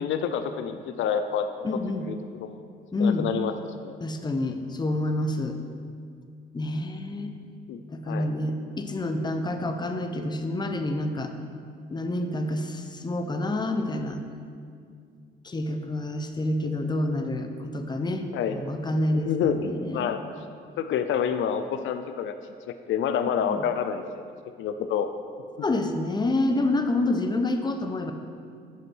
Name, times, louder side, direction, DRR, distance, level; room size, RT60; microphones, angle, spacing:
voice 1, 0.0-1.7 2.0-2.6 3.0-3.5 3.8-4.0 7.7-7.8 8.1-8.3 18.3-18.6 19.2-20.2 20.8-22.3 22.7-24.0 24.6-25.1, left 8 dB, 75° left, 9 dB, 0.5 m, -28 dB
voice 2, 1.6-2.1 2.9-3.3 4.0-5.6 6.5-7.3 7.9-11.3 11.9-14.2 15.4-20.1 23.5-23.6 25.6-28.1, left 2 dB, 20° left, 6 dB, 0.8 m, -28 dB
8.3 x 5.3 x 6.1 m, 2.3 s
cardioid pair, 90°, 20 cm